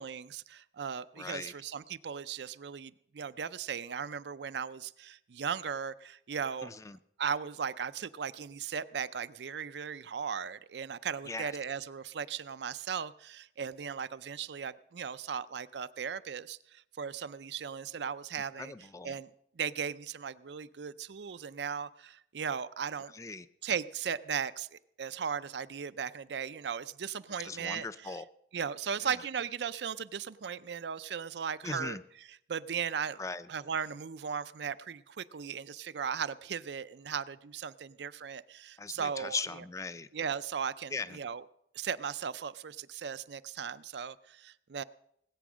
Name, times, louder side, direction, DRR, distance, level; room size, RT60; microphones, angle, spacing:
voice 1, 0.0-6.7 7.2-18.7 19.0-19.3 19.6-23.1 23.6-28.2 28.5-32.0 32.5-33.2 33.5-39.4 40.1-41.4 41.7-44.8, right 7 dB, 80° right, 15 dB, 0.5 m, -37 dB
voice 2, 1.2-1.5 6.6-7.0 11.3-11.5 18.6-19.1 23.1-23.5 27.4-28.2 29.0-29.1 31.6-32.0 33.2-33.5 38.8-40.1 40.9-41.2, left 3 dB, 20° left, 13 dB, 0.4 m, -39 dB
19.0 x 8.6 x 6.2 m, 0.74 s
head